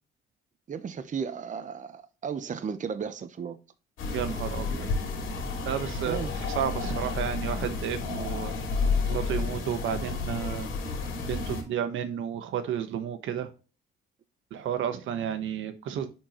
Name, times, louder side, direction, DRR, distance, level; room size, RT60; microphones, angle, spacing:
voice 1, 0.7-3.6 6.1-6.3, right 6 dB, 40° right, 0.8 m, -34 dB
sound 1, 4.0-11.6, left 4 dB, 85° left, 2.6 m, -31 dB
voice 2, 4.1-4.9 5.6-6.2 6.5-8.5 9.0-10.7 11.3-13.5 14.5-16.1, right 9 dB, 80° right, 1.1 m, -32 dB
10.5 x 4.5 x 3.0 m
cardioid pair, 90°, 20 cm